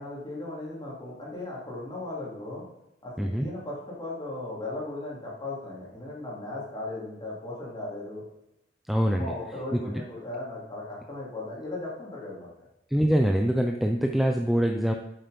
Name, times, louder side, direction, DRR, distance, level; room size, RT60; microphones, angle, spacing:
voice 1, 0.0-2.7 3.0-8.2 9.1-12.5, left 2 dB, 25° left, -5 dB, 3.4 m, -37 dB
voice 2, 8.9-9.3 9.7-10.0 12.9-14.9, equal, ahead, 3 dB, 0.5 m, -24 dB
8.8 x 7.7 x 5.2 m, 0.87 s
head